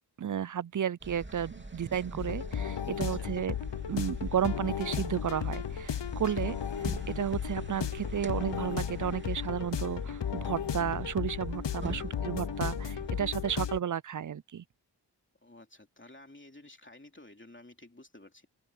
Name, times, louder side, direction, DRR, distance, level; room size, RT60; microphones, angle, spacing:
voice 1, 0.2-3.5 3.9-6.6 7.1-14.6, right 9 dB, 45° right, 0.5 m, -33 dB
sound 1, 1.0-13.6, right 2 dB, 25° right, 2.9 m, -44 dB
sound 2, 2.2-13.8, left 8 dB, 80° left, 0.8 m, -35 dB
voice 2, 3.0-3.4 6.1-6.5 11.8-12.2 15.4-18.5, left 2 dB, 30° left, 2.9 m, -53 dB
wide cardioid pair, 50°, 42 cm